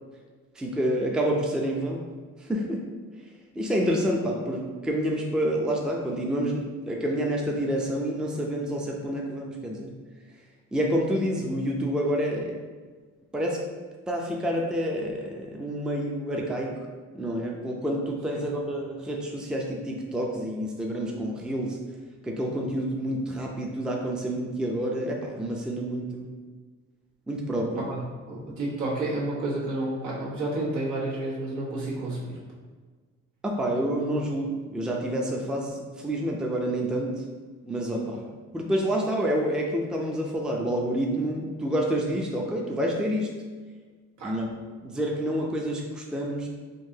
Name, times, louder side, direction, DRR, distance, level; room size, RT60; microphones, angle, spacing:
voice 1, 0.6-2.1 2.4-2.9 3.5-9.9 10.7-12.6 13.3-13.7 14.1-16.9 17.1-21.8 22.2-26.4 27.3-27.8 33.4-37.2 37.6-38.2 38.5-43.3 44.2-44.5 44.8-46.5, equal, 5° right, -1 dB, 0.4 m, -28 dB
voice 2, 28.3-32.4 44.2-44.3, right 2 dB, 75° right, -5 dB, 1.1 m, -30 dB
3.8 x 2.7 x 2.7 m, 1.4 s
cardioid pair, 90°, 30 cm